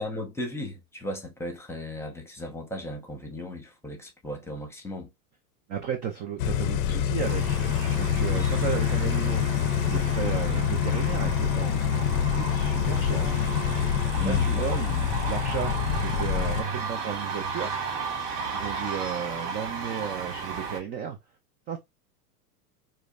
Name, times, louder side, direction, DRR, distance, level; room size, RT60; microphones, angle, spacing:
voice 1, 0.0-5.1 14.2-14.8, left 1 dB, 5° left, 0.9 m, -36 dB
voice 2, 5.7-7.7 8.0-9.5 9.8-12.1 12.3-13.4 14.2-17.7 18.5-21.2 21.7-21.8, right 8 dB, 20° right, 0.4 m, -34 dB
sound 1, 6.4-16.6, left 9 dB, 60° left, 0.6 m, -26 dB
sound 2, 7.2-20.8, right 5 dB, 55° right, 1.4 m, -34 dB
5.0 x 2.1 x 2.4 m
hypercardioid pair, 110°, 46 cm